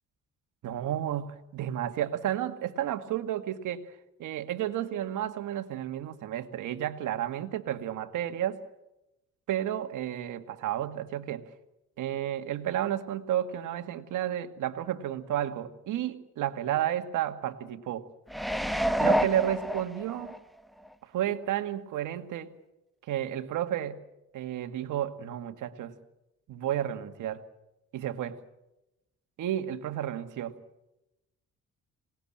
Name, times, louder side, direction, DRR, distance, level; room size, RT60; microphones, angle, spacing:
voice 1, 0.6-3.9 4.2-8.6 9.5-11.4 12.0-18.1 19.0-20.4 21.1-22.5 23.1-24.0 24.3-26.0 26.5-27.4 27.9-28.4 29.4-30.5, right 11 dB, 80° right, 8 dB, 2.0 m, -32 dB
sound 1, 18.3-20.4 20.9-21.0, equal, ahead, 1.2 m, -28 dB
26.5 x 19.5 x 8.8 m, 0.93 s
cardioid pair, 90°, 30 cm